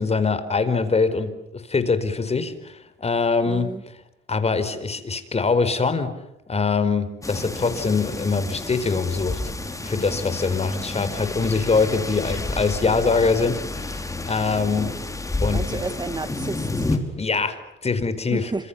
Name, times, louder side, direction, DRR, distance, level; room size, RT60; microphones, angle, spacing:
voice 1, 0.0-3.7 4.3-6.1 6.5-9.4 9.8-13.6 13.9-14.9 15.4-15.8 17.2-18.5, left 4 dB, 30° left, 12 dB, 4.7 m, -23 dB
voice 2, 3.5-3.8 15.5-16.9 18.3-18.7, right 3 dB, 20° right, 12 dB, 1.6 m, -31 dB
sound 1, 7.2-17.0, left 2 dB, 15° left, 5.0 m, -30 dB
29.5 x 27.0 x 7.1 m, 0.86 s
cardioid pair, 90°, 20 cm